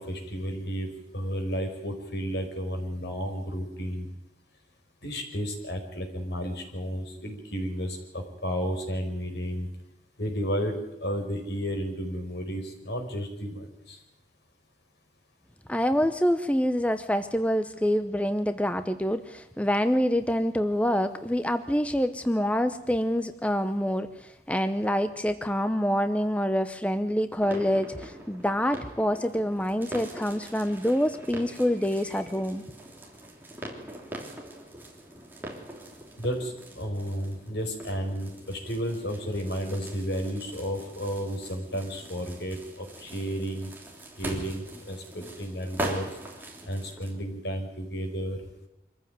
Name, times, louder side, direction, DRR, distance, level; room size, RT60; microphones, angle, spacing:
voice 1, 0.0-4.1 5.0-9.7 10.2-10.8 11.0-14.0 36.2-43.7 44.2-46.1 46.6-48.4, equal, 75° left, 4 dB, 5.0 m, -32 dB
voice 2, 15.7-32.6, equal, 5° left, 10 dB, 0.7 m, -26 dB
sound 1, 27.4-47.2, right 1 dB, 10° right, 3.2 m, -42 dB
24.5 x 14.5 x 9.3 m, 0.90 s
head